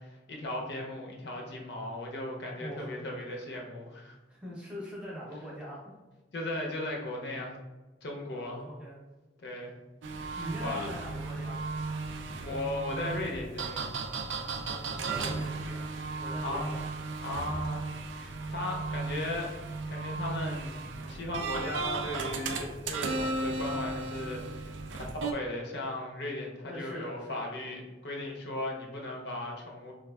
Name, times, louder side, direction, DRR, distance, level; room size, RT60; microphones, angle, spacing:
voice 1, 0.0-4.2 6.3-7.6 8.0-8.6 9.4-9.7 10.3-10.9 12.4-13.9 16.4-16.8 17.2-17.8 18.1-19.5 19.9-24.7 25.0-29.9, left 1 dB, 65° left, 0 dB, 0.6 m, -37 dB
voice 2, 2.6-3.0 4.3-5.8 8.3-9.0 10.4-11.6 14.6-15.9 16.2-16.8 26.7-27.5, equal, 5° right, -5 dB, 0.7 m, -42 dB
sound 1, 10.0-25.3, right 3 dB, 90° right, 0.3 m, -35 dB
4.1 x 2.3 x 2.2 m, 1.2 s
head